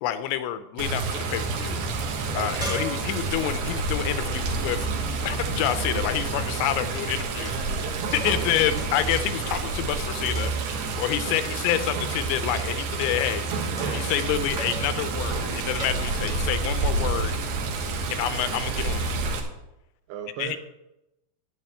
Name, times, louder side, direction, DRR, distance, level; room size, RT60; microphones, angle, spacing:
voice 1, 0.0-1.8 2.4-4.9 5.2-7.5 8.1-13.4 13.9-17.3 18.1-19.1 20.4-20.6, left 12 dB, 80° left, 11 dB, 2.8 m, -28 dB
Water, 0.8-19.4, right 3 dB, 65° right, 2.6 m, -29 dB
voice 2, 2.3-2.7 7.3-8.9 11.2-11.8 20.1-20.6, right 8 dB, 85° right, 4 dB, 2.3 m, -38 dB
sound 1, 2.6-4.9 5.6-6.0 6.7-7.0 7.4-8.5 8.8-9.1 9.5-10.0 10.3-10.9 12.5-12.9 13.8-14.2 14.6-15.0 15.7-16.0, equal, 5° right, 0.8 m, -39 dB
11.5 x 9.4 x 4.4 m, 0.91 s
omnidirectional pair, 5.5 m